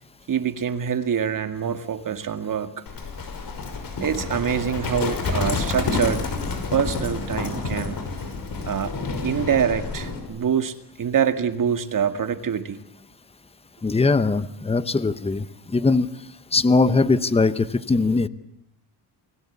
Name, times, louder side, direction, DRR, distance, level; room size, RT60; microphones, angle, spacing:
voice 1, 0.3-2.7 4.0-6.3 6.7-8.0 8.7-8.9 9.2-12.8, right 8 dB, 50° right, 9 dB, 2.1 m, -25 dB
Livestock farm animals working animals, 2.9-10.2, left 4 dB, 55° left, 6.0 m, -29 dB
voice 2, 13.8-15.5 15.7-16.1 16.5-18.3, left 3 dB, 15° left, 14 dB, 0.9 m, -20 dB
29.5 x 21.5 x 8.5 m, 0.78 s
cardioid pair, 135°, 41 cm